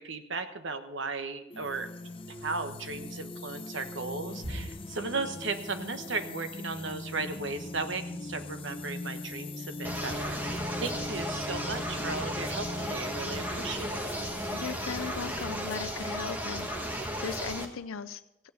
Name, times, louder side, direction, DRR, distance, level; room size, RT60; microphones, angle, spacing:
voice 1, 0.0-1.9 2.3-14.1, right 3 dB, 65° right, 8 dB, 1.1 m, -36 dB
sound 1, 1.5-16.2, left 2 dB, 25° left, 0.6 m, -41 dB
sound 2, 2.9-3.2 3.6-3.9 4.4-5.9 7.2-8.3 9.0-10.4, right 1 dB, 90° right, 4.1 m, -47 dB
sound 3, 9.8-17.7, equal, 10° right, 1.2 m, -35 dB
voice 2, 14.5-16.7 17.2-18.2, left 6 dB, 85° left, 11 dB, 0.5 m, -37 dB
15.5 x 9.4 x 5.5 m, 0.90 s
head